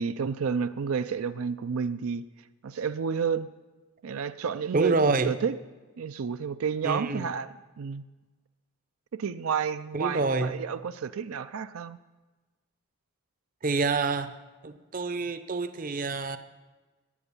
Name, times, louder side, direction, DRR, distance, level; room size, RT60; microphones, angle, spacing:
voice 1, 0.0-2.2 2.6-3.5 4.0-5.6 6.0-8.0 9.1-12.0, right 6 dB, 80° right, 12 dB, 0.4 m, -30 dB
voice 2, 4.7-5.3 6.8-7.3 9.9-10.5 13.6-14.4 14.6-16.4, right 3 dB, 40° right, 11 dB, 0.6 m, -27 dB
13.5 x 8.9 x 7.1 m, 1.2 s
head